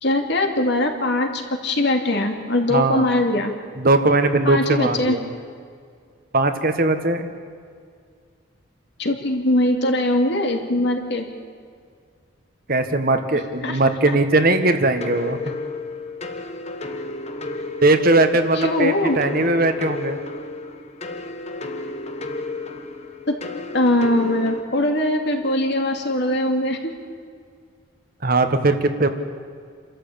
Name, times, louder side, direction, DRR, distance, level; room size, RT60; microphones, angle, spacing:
voice 1, 0.0-3.5 4.4-5.2 9.0-11.3 13.6-13.8 18.6-19.2 23.3-23.4 23.7-26.9, left 1 dB, 60° left, 3 dB, 2.6 m, -21 dB
voice 2, 2.7-3.0 3.8-5.3 6.3-7.3 12.7-15.4 17.8-20.2 28.2-29.1, right 2 dB, 45° right, 8 dB, 1.5 m, -19 dB
sound 1, 15.0-24.6, left 2 dB, 35° left, 1.5 m, -32 dB
28.0 x 13.5 x 8.7 m, 2.1 s
head